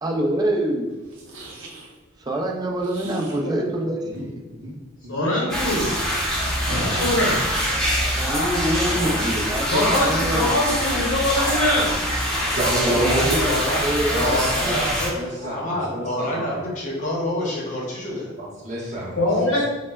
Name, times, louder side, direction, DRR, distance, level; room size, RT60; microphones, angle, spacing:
voice 1, 0.0-0.9 2.2-4.4 8.2-11.0 12.9-13.6 13.8-14.4, right 1 dB, 20° right, 0 dB, 0.4 m, -26 dB
sound 1, 1.0-1.9 2.8-3.4 4.0-4.3 4.5-4.7 5.0-5.3 6.6-7.6, equal, 85° right, 0.6 m, -34 dB
voice 2, 5.1-5.9 6.8-7.4 9.7-11.9 19.2-19.7, left 1 dB, 75° left, -3 dB, 0.6 m, -22 dB
sound 2, 5.5-15.1, equal, 5° left, 0.8 m, -24 dB
voice 3, 8.8-9.3 12.9-13.8 14.1-18.3, left 1 dB, 40° left, -3 dB, 0.7 m, -27 dB
voice 4, 12.5-13.4 13.7-16.6 18.4-19.7, right 1 dB, 35° right, -4 dB, 0.8 m, -29 dB
4.3 x 2.0 x 2.2 m, 1.2 s
head